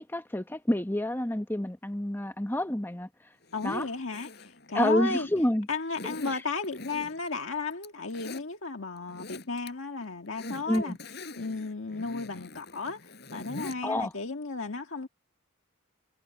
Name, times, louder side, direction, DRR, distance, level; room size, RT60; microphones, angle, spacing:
voice 1, 0.0-3.1 3.6-3.9 4.7-5.7 10.7-11.0 13.8-14.1, left 1 dB, 10° left, 1.0 m, -28 dB
Zipper (clothing), 3.4-5.4 5.9-7.3 7.7-8.4 8.9-9.7 10.0-13.8 14.1-14.2, left 2 dB, 50° left, 6.9 m, -43 dB
voice 2, 3.5-5.3 5.7-11.0 11.4-15.1, left 3 dB, 70° left, 1.7 m, -34 dB
head